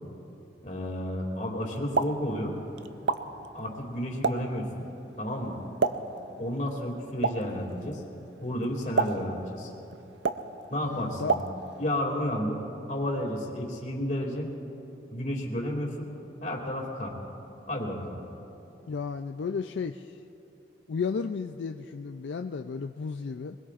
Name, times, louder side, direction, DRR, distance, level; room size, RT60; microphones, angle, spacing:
voice 1, 0.6-2.5 3.5-4.7 5.2-5.6 6.4-8.0 8.4-9.7 10.7-11.5 11.8-12.6 12.9-14.5 15.1-16.1 16.4-17.1 17.7-18.2, left 1 dB, 40° left, -1 dB, 2.4 m, -31 dB
Explosion, 1.7-12.0, right 4 dB, 70° right, 0.6 m, -33 dB
voice 2, 10.9-11.4 18.9-20.2 20.9-23.6, left 5 dB, 70° left, 6 dB, 0.4 m, -33 dB
24.0 x 21.0 x 2.5 m, 2.9 s
head